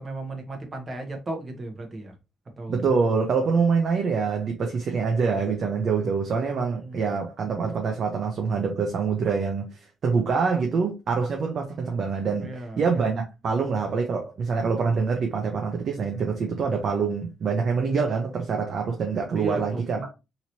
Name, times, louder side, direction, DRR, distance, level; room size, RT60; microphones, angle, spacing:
voice 1, 0.0-2.1 2.6-2.7 6.5-7.0 12.4-12.8 19.3-20.1, right 2 dB, 35° right, 1.0 m, -35 dB
voice 2, 2.7-9.7 10.0-20.1, right 5 dB, 60° right, 0.7 m, -25 dB
2.9 x 2.9 x 2.8 m
cardioid pair, 90°, 0 cm